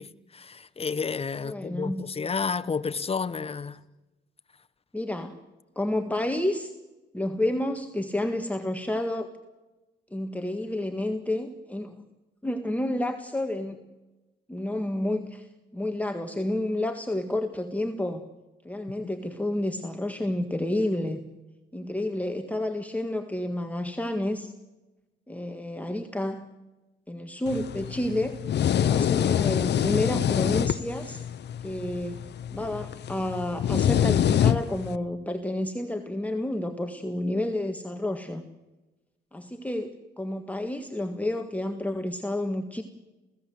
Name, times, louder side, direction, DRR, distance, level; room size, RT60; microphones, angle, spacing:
voice 1, 0.0-3.8 28.8-29.1, left 5 dB, 30° left, 12 dB, 1.2 m, -31 dB
voice 2, 1.4-2.0 4.9-5.4 5.7-6.7 7.1-9.3 10.1-12.0 12.4-13.8 14.5-15.5 15.7-18.2 18.6-21.2 21.7-24.5 25.3-26.5 27.1-28.4 28.8-31.2 31.6-32.2 32.5-38.4 39.3-42.8, left 1 dB, 5° left, 4 dB, 1.7 m, -30 dB
sound 1, 27.5-35.0, left 10 dB, 60° left, 0.8 m, -26 dB
29.5 x 16.0 x 7.8 m, 1.1 s
cardioid pair, 90°, 20 cm